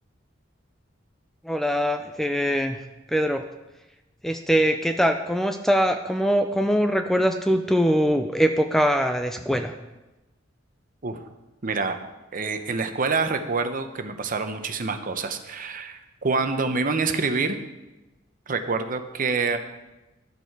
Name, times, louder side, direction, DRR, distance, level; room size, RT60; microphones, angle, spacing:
voice 1, 1.4-2.8 3.1-3.4 4.2-9.7, equal, ahead, 6 dB, 0.4 m, -22 dB
voice 2, 11.6-12.0 12.3-17.6 18.5-19.6, right 4 dB, 45° right, 8 dB, 0.8 m, -26 dB
12.0 x 6.8 x 4.7 m, 1.1 s
head